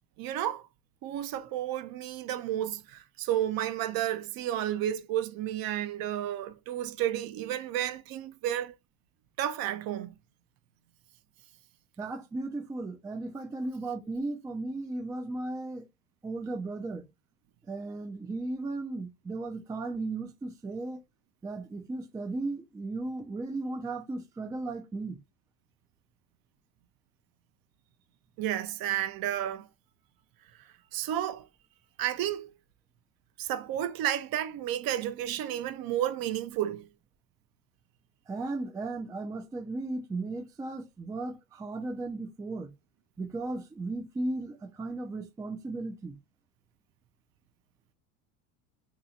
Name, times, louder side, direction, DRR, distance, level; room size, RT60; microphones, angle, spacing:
voice 1, 0.2-0.7 1.0-8.7 9.4-10.1 28.4-29.7 30.9-31.5 32.0-32.5 33.4-36.9, right 11 dB, 50° right, 0.6 m, -32 dB
voice 2, 12.0-15.8 16.2-17.0 17.7-21.0 21.4-25.2 38.3-42.7 43.2-46.1, right 2 dB, 10° right, 0.3 m, -36 dB
2.9 x 2.3 x 3.9 m
supercardioid pair, 105°, 47 cm